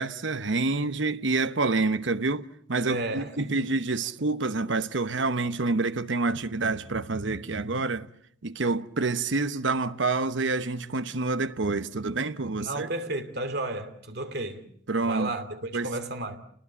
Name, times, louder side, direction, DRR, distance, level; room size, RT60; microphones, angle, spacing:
voice 1, 0.0-8.1 8.4-12.9 14.9-15.3 15.7-15.9, right 3 dB, 70° right, 1.1 m, -27 dB
voice 2, 2.8-3.6 12.6-14.6 15.0-16.4, right 2 dB, 55° right, 2.7 m, -33 dB
29.5 x 20.0 x 8.3 m
head